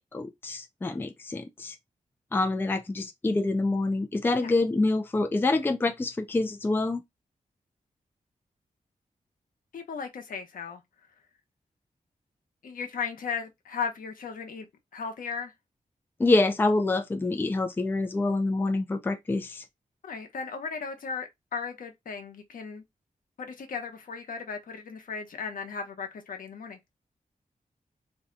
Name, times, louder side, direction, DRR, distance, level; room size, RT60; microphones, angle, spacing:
voice 1, 0.0-1.7 2.3-7.0 16.2-19.6, left 2 dB, 15° left, 0.3 m, -26 dB
voice 2, 9.7-10.8 12.6-14.7 14.9-15.5 20.0-22.8 23.4-26.8, left 5 dB, 85° left, 0.8 m, -36 dB
2.7 x 2.2 x 3.7 m
wide cardioid pair, 170°, 14 cm